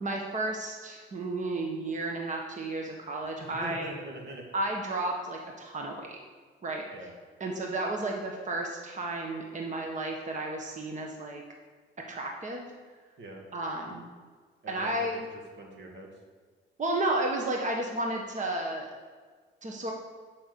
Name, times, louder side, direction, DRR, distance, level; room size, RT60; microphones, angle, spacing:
voice 1, 0.0-3.9 4.5-6.2 6.6-6.8 7.4-11.4 12.1-12.7 13.5-14.0 14.7-15.2 16.8-18.9 19.6-19.9, right 2 dB, 40° right, 1 dB, 1.4 m, -32 dB
voice 2, 3.4-4.4 6.9-7.1 13.2-13.4 14.6-15.2 15.6-16.1, right 1 dB, 75° right, 0 dB, 2.3 m, -42 dB
7.8 x 6.1 x 6.9 m, 1.6 s
cardioid pair, 90°, 20 cm